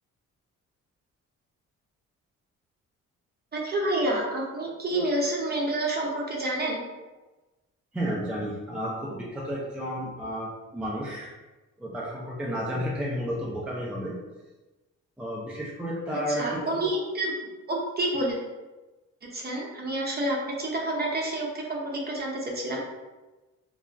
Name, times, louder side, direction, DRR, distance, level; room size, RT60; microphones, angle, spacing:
voice 1, 3.5-6.8 16.1-17.3 17.7-18.4 19.3-22.8, right 1 dB, 30° right, -2 dB, 0.7 m, -28 dB
voice 2, 7.9-11.3 11.8-14.2 15.2-16.4, equal, 5° right, -5 dB, 0.5 m, -32 dB
2.3 x 2.0 x 3.4 m, 1.1 s
cardioid pair, 90°, 30 cm